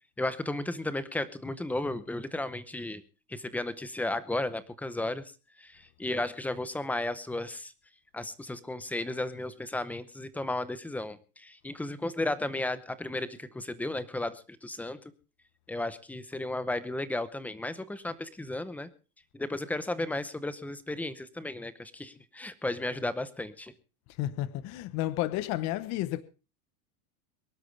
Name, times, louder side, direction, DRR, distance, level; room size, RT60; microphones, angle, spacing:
voice 1, 0.2-3.0 3.3-5.2 5.6-7.7 8.1-15.1 15.7-18.9 19.3-23.7, left 2 dB, 5° left, 0.7 m, -34 dB
voice 2, 24.1-26.2, left 14 dB, 35° left, 0.9 m, -31 dB
23.0 x 12.0 x 3.3 m
supercardioid pair, 160°, 44 cm